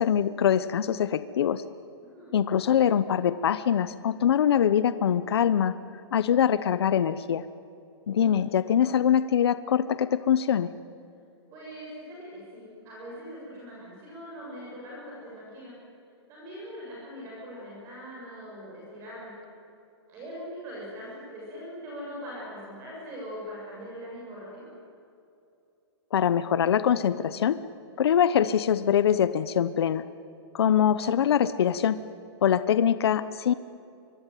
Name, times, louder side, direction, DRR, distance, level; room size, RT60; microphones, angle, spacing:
voice 1, 0.0-1.6 2.3-5.7 6.1-7.4 8.1-10.7 26.1-27.6 28.0-30.0 30.5-32.0 32.4-33.5, left 9 dB, 65° left, 14 dB, 1.0 m, -23 dB
voice 2, 2.0-2.4 8.1-8.7 11.5-15.7 16.3-19.3 20.1-24.7, equal, 20° right, -5 dB, 6.7 m, -42 dB
25.5 x 24.0 x 9.2 m, 2.7 s
hypercardioid pair, 175°, 14 cm